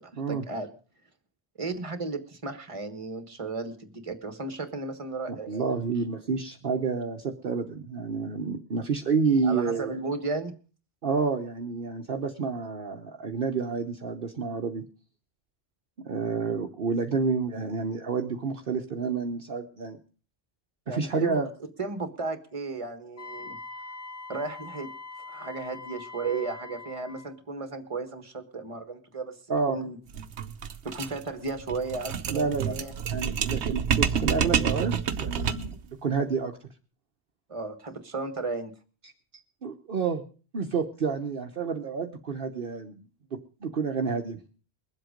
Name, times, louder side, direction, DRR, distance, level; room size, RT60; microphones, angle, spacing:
voice 1, 0.3-0.7 1.6-5.6 9.4-10.5 20.9-21.4 21.8-23.6 24.3-24.9 25.3-29.3 29.7-30.0 30.8-32.9 37.5-38.7, right 3 dB, 30° right, 8 dB, 1.4 m, -34 dB
voice 2, 5.3-9.9 11.0-14.8 16.0-20.0 20.9-21.5 29.5-29.8 32.3-32.8 33.1-36.5 39.6-40.2 40.5-44.4, right 5 dB, 60° right, 4 dB, 1.1 m, -29 dB
Wind instrument woodwind instrument, 23.2-27.3, left 4 dB, 60° left, 2.0 m, -42 dB
sound 1, 30.1-35.8, right 7 dB, 90° right, 1.1 m, -28 dB
21.5 x 7.8 x 5.1 m, 0.38 s
omnidirectional pair, 1.1 m